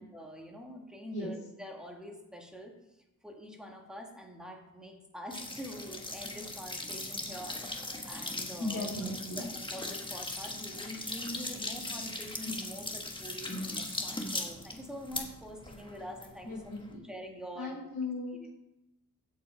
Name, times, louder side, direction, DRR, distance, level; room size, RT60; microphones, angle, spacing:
voice 1, 0.0-2.8 3.2-8.9 9.4-16.8 17.1-17.7 18.4-18.5, equal, ahead, 1 dB, 1.8 m, -45 dB
sound 1, 5.3-17.0, left 2 dB, 15° left, 1.3 m, -39 dB
voice 2, 8.3-9.4 16.4-17.0 17.5-18.5, left 2 dB, 50° left, -7 dB, 3.7 m, -37 dB
16.0 x 5.5 x 4.5 m, 0.93 s
wide cardioid pair, 120°, 35 cm